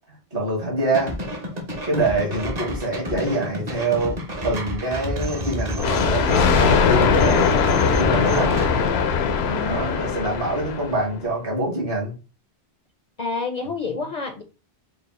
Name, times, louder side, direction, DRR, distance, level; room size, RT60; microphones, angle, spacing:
voice 1, 0.3-1.2 1.8-4.2 4.4-7.5 7.8-8.5 9.6-12.1, right 2 dB, 60° right, -2 dB, 1.9 m, -25 dB
sound 1, 0.9-8.9, equal, 40° right, 1.0 m, -30 dB
Thunder, 5.8-11.1, left 6 dB, 80° left, 0.8 m, -20 dB
voice 2, 9.5-10.2 13.2-14.4, left 3 dB, 50° left, 4 dB, 0.6 m, -29 dB
4.7 x 2.3 x 3.6 m, 0.32 s
omnidirectional pair, 1.1 m